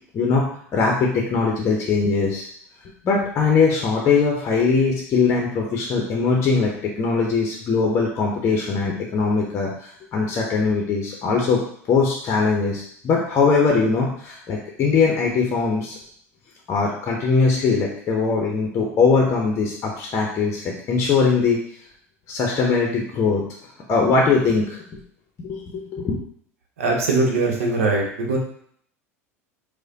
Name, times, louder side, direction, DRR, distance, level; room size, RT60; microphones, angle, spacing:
voice 1, 0.1-2.5 3.0-11.6 11.9-15.9 16.7-21.6 22.3-23.4 23.9-24.8 25.4-26.2, left 4 dB, 35° left, -1 dB, 0.7 m, -21 dB
voice 2, 26.8-28.4, right 3 dB, 70° right, 0 dB, 0.8 m, -21 dB
4.8 x 2.2 x 2.8 m, 0.63 s
figure-of-eight pair, 75°, 8 cm